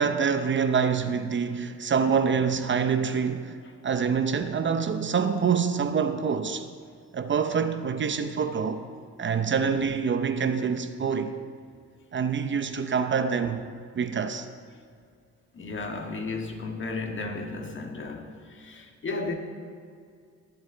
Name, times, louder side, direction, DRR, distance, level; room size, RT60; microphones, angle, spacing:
voice 1, 0.0-6.7 7.1-8.8 9.2-11.4 12.1-13.6 13.9-14.5, right 6 dB, 40° right, 0.7 m, -26 dB
voice 2, 15.5-19.3, left 3 dB, 40° left, 1.7 m, -34 dB
21.5 x 7.9 x 3.9 m
cardioid pair, 90°, 30 cm